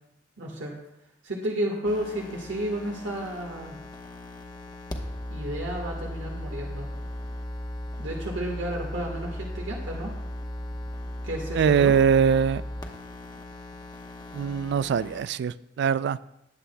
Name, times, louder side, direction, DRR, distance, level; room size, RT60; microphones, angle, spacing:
voice 1, 0.4-0.7 1.2-3.8 5.3-6.9 8.0-10.1 11.2-11.9, right 1 dB, 90° right, -1 dB, 1.5 m, -32 dB
sound 1, 1.8-15.2, left 1 dB, 25° left, 0.9 m, -37 dB
voice 2, 11.5-12.6 14.3-16.2, right 7 dB, 65° right, 17 dB, 0.3 m, -22 dB
19.5 x 7.8 x 2.2 m, 0.86 s
head